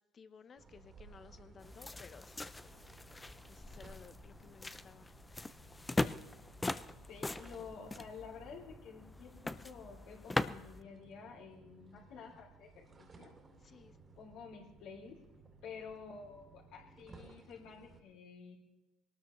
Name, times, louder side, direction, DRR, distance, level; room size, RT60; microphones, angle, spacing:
voice 1, 0.1-5.1 13.6-14.0, left 6 dB, 30° left, 12 dB, 0.9 m, -58 dB
sound 1, 0.6-18.0, right 3 dB, 25° right, 2.6 m, -59 dB
sound 2, 1.6-10.8, left 2 dB, 10° left, 0.4 m, -41 dB
voice 2, 7.1-13.3 14.1-15.2 15.6-18.6, left 5 dB, 70° left, -2 dB, 3.0 m, -51 dB
22.0 x 18.5 x 3.1 m, 1.2 s
cardioid pair, 135°, 0 cm